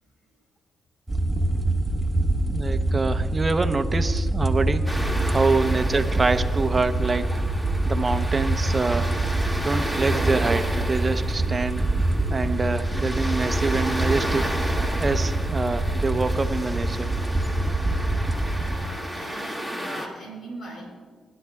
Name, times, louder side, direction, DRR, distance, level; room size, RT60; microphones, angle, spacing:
sound 1, 1.1-18.8, right 2 dB, 15° right, 1.6 m, -25 dB
voice 1, 2.5-4.8 5.2-7.2 7.8-9.1 9.6-11.9 12.3-14.5 15.0-17.1, right 3 dB, 35° right, 8 dB, 0.9 m, -25 dB
sound 2, 4.9-20.1, equal, 5° left, 2.2 m, -33 dB
voice 2, 18.5-21.0, right 1 dB, 65° left, -1 dB, 3.9 m, -41 dB
21.0 x 12.0 x 2.4 m, 1.5 s
supercardioid pair, 55°, 0 cm